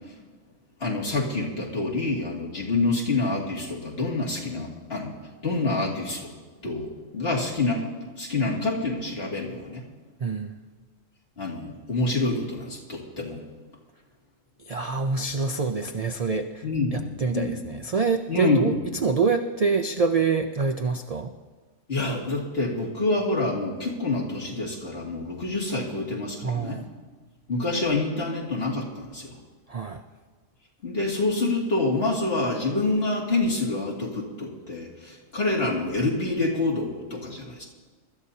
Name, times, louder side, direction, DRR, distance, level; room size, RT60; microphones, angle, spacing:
voice 1, 0.8-5.2 5.4-6.3 6.6-7.8 8.2-9.8 11.4-13.4 16.6-17.6 18.3-18.8 21.9-26.8 27.5-29.3 30.8-37.6, left 2 dB, 45° left, -4 dB, 2.8 m, -27 dB
voice 2, 14.7-16.7 16.9-18.7 19.0-21.3 26.4-26.8 29.7-30.0, right 4 dB, 45° right, 6 dB, 0.5 m, -26 dB
24.0 x 13.0 x 2.8 m, 1.4 s
omnidirectional pair, 1.4 m